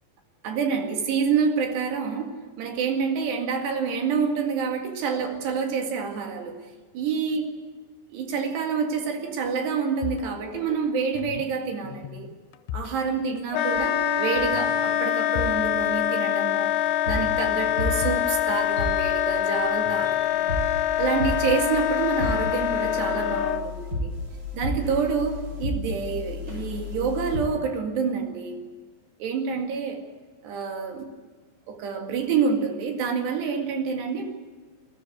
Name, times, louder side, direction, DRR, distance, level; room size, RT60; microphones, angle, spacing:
voice 1, 0.4-6.6 6.9-7.5 8.1-12.3 12.7-16.7 17.0-20.5 21.0-24.1 24.5-28.6 29.2-30.0 30.4-31.1 31.7-34.3, right 5 dB, 70° right, 3 dB, 4.1 m, -27 dB
sound 1, 10.0-11.6 11.8-13.4 13.7-13.9 14.5-15.6 15.9-16.0 17.2-19.3 19.9-20.7, left 12 dB, 80° left, 2.8 m, -38 dB
Wind instrument woodwind instrument, 13.5-23.6, left 10 dB, 60° left, 2.2 m, -25 dB
sound 2, 13.7-14.1 14.3-14.5 15.3-15.5 16.2-27.4, left 2 dB, 15° right, 5.8 m, -34 dB
21.0 x 13.5 x 9.6 m, 1.4 s
omnidirectional pair, 5.1 m